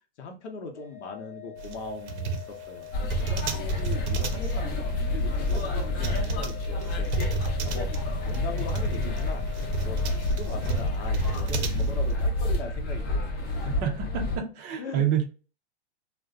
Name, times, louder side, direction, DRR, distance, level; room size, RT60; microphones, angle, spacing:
voice 1, 0.2-7.1 7.6-9.5 9.8-13.9 14.8-15.1, left 3 dB, 80° left, 0.8 m, -40 dB
Organ, 0.7-11.4, left 14 dB, 10° left, 1.0 m, -44 dB
sound 1, 1.6-12.1, right 5 dB, 80° right, 0.7 m, -33 dB
sound 2, 2.9-14.4, left 1 dB, 35° left, 0.7 m, -29 dB
voice 2, 13.8-15.2, right 9 dB, 25° right, 0.4 m, -27 dB
2.5 x 2.1 x 2.4 m
hypercardioid pair, 135°, 34 cm